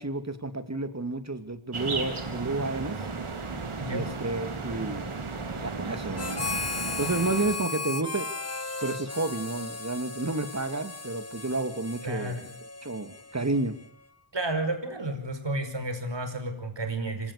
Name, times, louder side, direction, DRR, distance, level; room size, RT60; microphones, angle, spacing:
voice 1, 0.0-3.0 3.9-5.0 5.5-6.7 7.0-8.3 8.8-12.4 12.8-13.8, right 2 dB, 30° right, 10 dB, 2.7 m, -31 dB
sound 1, 1.7-7.7, right 4 dB, 75° right, 3.9 m, -35 dB
Harmonica, 6.2-13.9, left 3 dB, 30° left, 1.4 m, -36 dB
voice 2, 12.0-12.4 14.3-17.3, right 2 dB, 55° right, 7 dB, 5.5 m, -31 dB
26.0 x 17.5 x 6.8 m, 0.70 s
cardioid pair, 50°, 50 cm